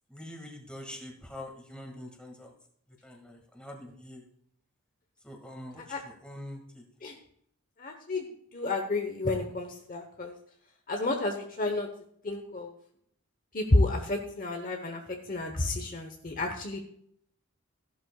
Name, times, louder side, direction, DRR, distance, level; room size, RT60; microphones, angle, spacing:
voice 1, 0.1-2.5 3.0-4.2 5.2-6.8, left 1 dB, 5° left, 1 dB, 2.0 m, -44 dB
voice 2, 7.8-8.3 8.5-10.3 10.9-11.9 12.2-12.7 13.5-16.8, left 2 dB, 40° left, 3 dB, 1.0 m, -30 dB
15.5 x 11.5 x 2.4 m, 0.67 s
head